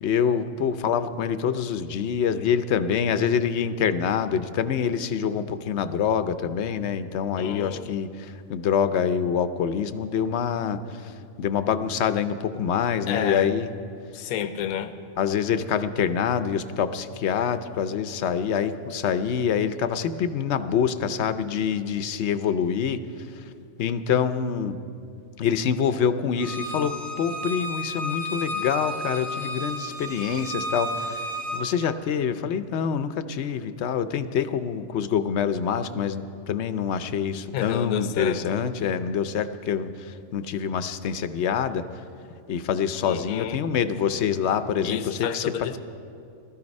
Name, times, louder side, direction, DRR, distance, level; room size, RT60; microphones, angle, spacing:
voice 1, 0.0-11.1 11.4-13.7 15.2-23.0 23.4-23.5 23.8-24.8 25.4-31.2 31.5-41.9 42.5-45.7, left 7 dB, 60° left, 12 dB, 0.8 m, -26 dB
voice 2, 7.4-7.9 13.1-13.5 14.1-14.9 37.5-38.4 43.0-43.6 44.8-45.8, left 9 dB, 85° left, 10 dB, 1.2 m, -30 dB
Bowed string instrument, 26.4-31.6, equal, 70° right, 1.8 m, -32 dB
18.5 x 13.5 x 5.3 m, 2.5 s
omnidirectional pair, 1.5 m